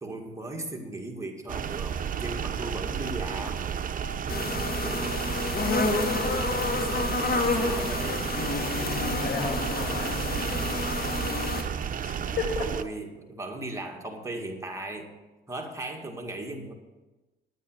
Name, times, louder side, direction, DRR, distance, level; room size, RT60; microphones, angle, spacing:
voice 1, 0.0-3.7 6.7-6.9 7.4-8.3 12.6-15.2 15.5-16.7, right 2 dB, 15° right, 1 dB, 2.0 m, -37 dB
sound 1, 1.5-12.8, right 8 dB, 45° right, 0.7 m, -32 dB
voice 2, 4.0-4.3 5.7-6.2 9.0-10.6 12.0-12.7, left 5 dB, 85° left, 1 dB, 3.0 m, -35 dB
sound 2, 4.3-11.6, left 3 dB, 50° left, 1.8 m, -29 dB
10.0 x 9.2 x 6.6 m, 1.1 s
cardioid pair, 90°, 20 cm